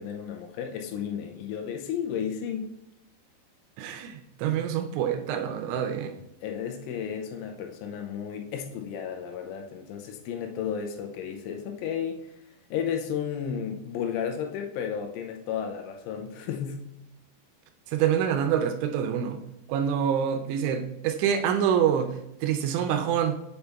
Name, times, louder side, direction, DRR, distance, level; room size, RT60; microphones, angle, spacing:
voice 1, 0.0-2.7 6.4-12.3 12.7-16.8, left 8 dB, 85° left, 4 dB, 3.2 m, -33 dB
voice 2, 3.8-6.1 17.9-19.4 19.7-23.4, right 8 dB, 80° right, 7 dB, 2.9 m, -26 dB
6.7 x 5.6 x 3.4 m, 0.82 s
omnidirectional pair, 5.6 m